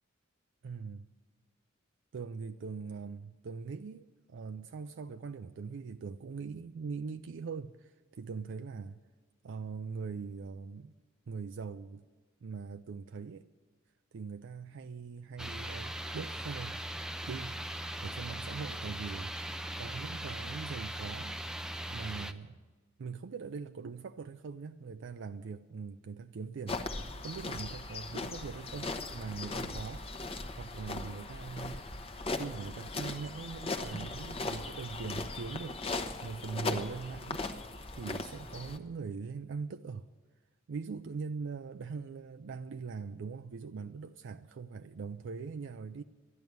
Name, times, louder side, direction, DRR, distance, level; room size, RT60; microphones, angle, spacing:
voice 1, 0.6-1.1 2.1-9.0 9.4-10.9 11.3-12.0 12.4-13.4 14.1-16.8 17.3-17.6 18.0-19.3 19.8-21.4 21.9-22.6 23.0-30.0 30.5-31.9 32.3-35.8 36.2-37.4 37.9-40.1 40.7-46.0, right 5 dB, 65° right, 0.4 m, -41 dB
sound 1, 15.4-22.3, right 1 dB, 5° right, 0.5 m, -39 dB
sound 2, 26.7-38.8, left 3 dB, 30° left, 0.9 m, -39 dB
12.0 x 10.5 x 9.3 m
head